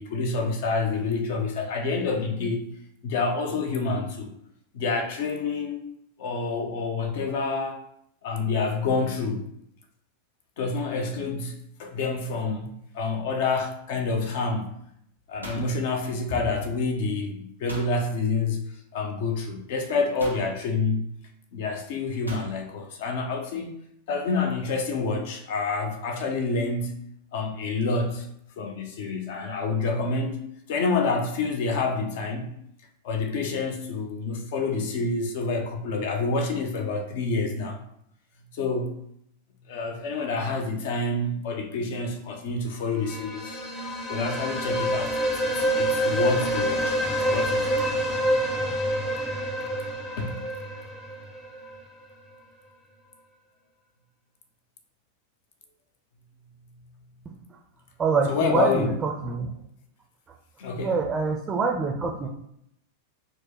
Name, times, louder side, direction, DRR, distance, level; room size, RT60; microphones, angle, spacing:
voice 1, 0.0-2.7 3.0-4.3 4.7-5.8 6.2-7.8 8.2-9.5 10.6-11.5 11.8-14.7 15.3-21.1 21.5-23.8 24.1-27.0 27.3-28.3 28.6-30.4 30.7-32.5 33.0-37.8 38.5-38.9 39.7-43.6 44.1-47.0 47.3-47.7 50.2-50.4 58.3-59.0 60.6-61.1, left 3 dB, 50° left, 0.6 m, -28 dB
sound 1, 15.1-16.6 17.7-18.0 19.1-19.2 20.2-20.5 22.3-22.6, equal, 90° left, 0.8 m, -41 dB
sound 2, 42.9-51.8, equal, 15° left, 0.7 m, -27 dB
voice 2, 58.0-59.5 60.7-62.3, right 4 dB, 20° right, 0.4 m, -25 dB
4.4 x 2.1 x 3.0 m
figure-of-eight pair, 90°, 0 cm